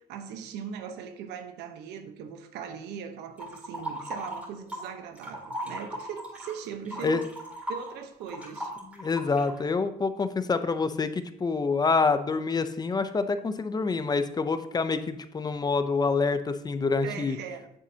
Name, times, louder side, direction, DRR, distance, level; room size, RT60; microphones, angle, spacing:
voice 1, 0.0-7.3 7.7-8.7 17.0-17.7, right 7 dB, 85° right, 1.0 m, -39 dB
sound 1, 3.4-4.9 5.2-9.6, equal, 10° right, 3.6 m, -37 dB
voice 2, 9.0-17.4, left 4 dB, 25° left, 0.6 m, -27 dB
9.0 x 8.1 x 2.8 m
cardioid pair, 110°, 17 cm